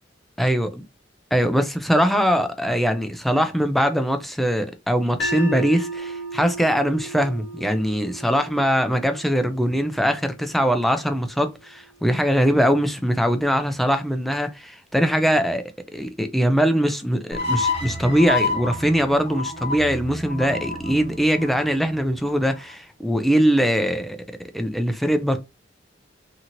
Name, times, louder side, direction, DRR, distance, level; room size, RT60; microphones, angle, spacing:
voice 1, 0.4-0.7 1.3-15.6 15.9-24.2 24.5-25.4, equal, ahead, 0.3 m, -21 dB
sound 1, 5.2-11.4, right 1 dB, 70° left, 0.9 m, -35 dB
sound 2, 17.3-22.5, left 3 dB, 35° left, 0.8 m, -29 dB
2.8 x 2.7 x 2.5 m
head